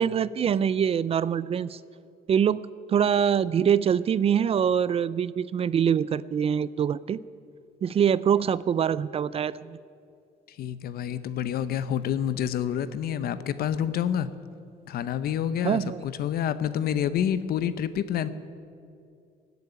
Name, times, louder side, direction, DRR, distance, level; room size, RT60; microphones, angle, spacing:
voice 1, 0.0-1.8 2.3-2.6 2.9-7.2 7.8-9.8 15.6-16.0, right 8 dB, 35° right, 19 dB, 0.4 m, -24 dB
voice 2, 10.5-14.3 14.9-18.3, left 9 dB, 65° left, 14 dB, 0.8 m, -28 dB
17.5 x 8.2 x 9.9 m, 2.5 s
cardioid pair, 110°, 17 cm